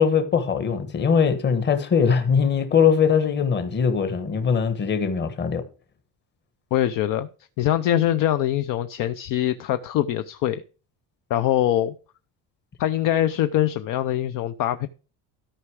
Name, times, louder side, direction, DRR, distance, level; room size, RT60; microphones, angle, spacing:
voice 1, 0.0-5.6, left 6 dB, 25° left, 1.4 m, -21 dB
voice 2, 6.7-7.3 7.6-10.6 11.3-11.9 12.8-14.9, left 12 dB, 50° left, 0.7 m, -23 dB
13.5 x 5.7 x 4.8 m
cardioid pair, 175°, 43 cm